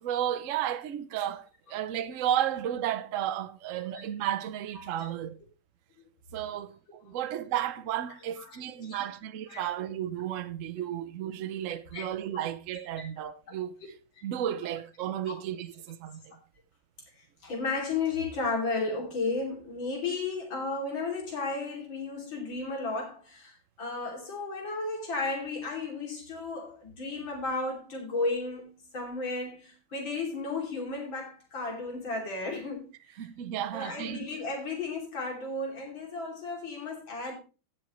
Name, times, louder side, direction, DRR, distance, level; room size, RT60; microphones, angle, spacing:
voice 1, 0.0-1.4 1.7-5.3 6.3-6.7 7.1-13.7 14.2-16.2 33.2-34.3, right 11 dB, 65° right, 0.7 m, -33 dB
voice 2, 4.7-5.1 7.0-7.2 8.5-9.0 9.5-9.6 11.9-12.0 15.3-15.4 17.4-32.9 33.7-37.3, left 3 dB, 65° left, 3.6 m, -34 dB
16.5 x 6.4 x 3.1 m
omnidirectional pair, 2.3 m